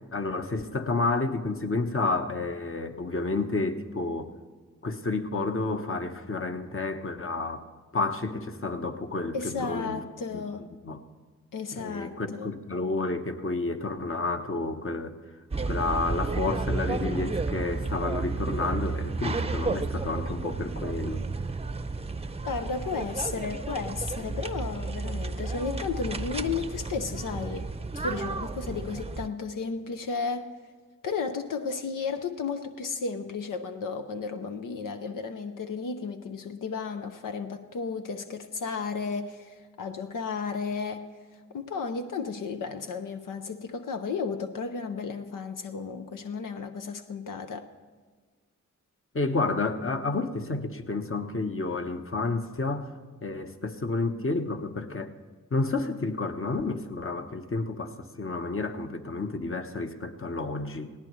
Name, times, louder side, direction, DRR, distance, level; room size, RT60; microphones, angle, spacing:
voice 1, 0.1-4.3 4.8-7.6 7.9-10.0 10.3-10.4 10.8-11.0 11.7-15.1 15.7-21.2 49.1-52.9 53.2-55.1 55.5-60.9, left 3 dB, 45° left, 6 dB, 1.1 m, -30 dB
voice 2, 9.3-10.7 11.5-12.5 22.4-27.7 27.9-30.5 31.0-41.1 41.5-47.7, left 5 dB, 85° left, 7 dB, 0.7 m, -33 dB
sound 1, 15.5-29.3, right 3 dB, 20° right, 0.6 m, -32 dB
19.0 x 17.0 x 3.1 m, 1.5 s
cardioid pair, 45°, 31 cm